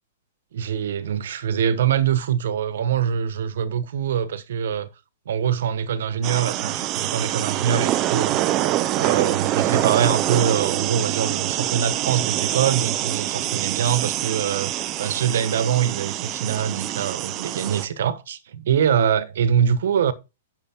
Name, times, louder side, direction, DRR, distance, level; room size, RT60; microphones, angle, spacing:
voice 1, 0.5-4.9 5.2-8.4 9.0-14.7 15.0-20.1, right 8 dB, 65° right, 1.2 m, -23 dB
sound 1, 6.2-17.9, right 13 dB, 25° right, 0.6 m, -25 dB
10.0 x 6.8 x 3.6 m
hypercardioid pair, 170°, 0 cm